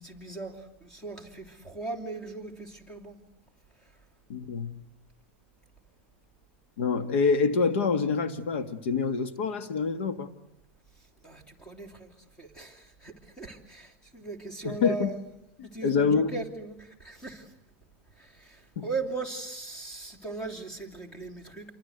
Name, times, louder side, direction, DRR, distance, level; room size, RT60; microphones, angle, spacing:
voice 1, 0.0-3.2 11.2-12.1 12.4-15.2 15.6-17.5 18.2-21.7, right 3 dB, 10° left, 3.0 m, -38 dB
voice 2, 4.3-4.8 6.8-10.3 14.6-15.1 15.6-16.3 18.8-18.9, left 5 dB, 75° left, 2.0 m, -26 dB
28.5 x 24.0 x 8.1 m
supercardioid pair, 165°, 7 cm